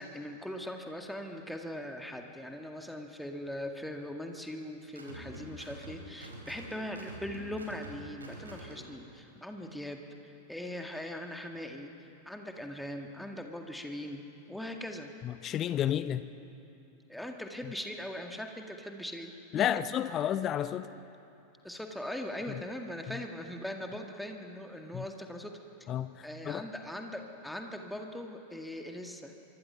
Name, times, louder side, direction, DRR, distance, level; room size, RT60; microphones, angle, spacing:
voice 1, 0.0-11.9 12.3-15.1 17.1-19.7 21.6-25.6 26.2-29.3, left 1 dB, ahead, 3 dB, 1.9 m, -40 dB
sound 1, 4.9-9.0, equal, 75° right, 4.6 m, -47 dB
voice 2, 15.2-16.2 19.5-20.9 24.9-25.0 25.9-26.6, left 10 dB, 30° left, 14 dB, 0.7 m, -31 dB
24.5 x 24.5 x 5.8 m, 2.9 s
figure-of-eight pair, 90°, 0 cm